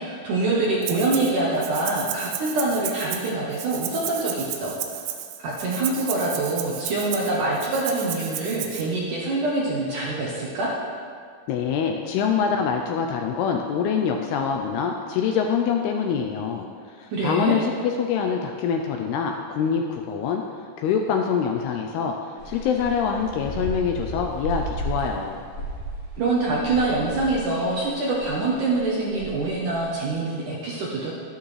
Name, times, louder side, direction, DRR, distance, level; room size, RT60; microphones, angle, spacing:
voice 1, 0.0-4.7 5.4-10.7 17.1-17.6 26.2-31.1, right 2 dB, 65° right, -5 dB, 2.1 m, -25 dB
Rattle (instrument), 0.8-1.3 1.6-8.8, right 10 dB, 85° right, 2.9 m, -33 dB
voice 2, 11.5-20.4 20.8-25.5, left 6 dB, 80° left, 3 dB, 2.4 m, -25 dB
sound 1, 22.4-27.8 28.1-29.8, right 1 dB, 45° left, 4.5 m, -34 dB
12.0 x 11.0 x 3.3 m, 2.1 s
omnidirectional pair, 5.0 m